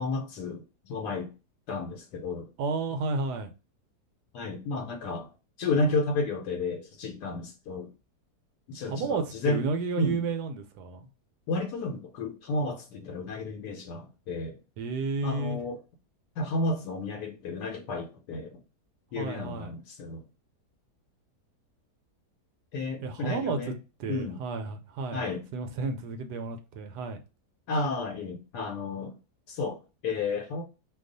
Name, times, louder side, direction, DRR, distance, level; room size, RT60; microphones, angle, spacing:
voice 1, 0.0-1.3 1.7-2.5 4.3-5.3 5.6-7.9 8.7-9.6 10.0-10.2 11.5-14.6 15.2-15.8 16.4-18.6 19.1-20.2 22.7-23.7 24.1-24.4 25.1-25.5 27.7-29.1 29.5-30.6, left 3 dB, 85° left, 1.2 m, -32 dB
voice 2, 2.6-3.5 8.9-11.1 14.8-15.6 19.2-19.7 23.0-23.7 24.0-25.3 25.5-27.2, right 4 dB, 80° right, 1.1 m, -32 dB
2.7 x 2.3 x 3.8 m
omnidirectional pair, 1.7 m